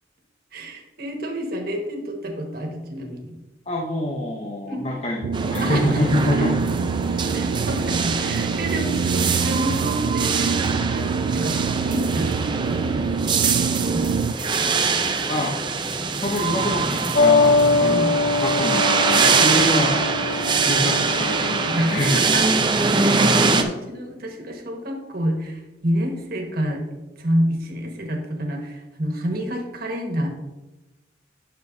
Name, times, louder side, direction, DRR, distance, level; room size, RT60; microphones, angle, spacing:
voice 1, 0.5-3.4 4.7-4.9 5.6-6.0 6.3-6.5 7.3-11.1 11.3-14.9 17.8-18.1 19.3-19.6 21.7-22.4 22.8-26.8 27.2-30.3, equal, 55° right, 2 dB, 1.5 m, -29 dB
voice 2, 3.7-6.5 15.3-15.7 16.2-18.1 18.4-20.2 20.7-22.2, left 1 dB, 35° left, -1 dB, 0.8 m, -25 dB
sound 1, 5.2-14.3, right 5 dB, 80° right, 0.3 m, -25 dB
sound 2, 5.3-23.6, right 4 dB, 25° right, 0.5 m, -23 dB
sound 3, 17.1-22.4, left 3 dB, 75° left, 0.7 m, -22 dB
9.5 x 6.6 x 2.7 m, 1.0 s
head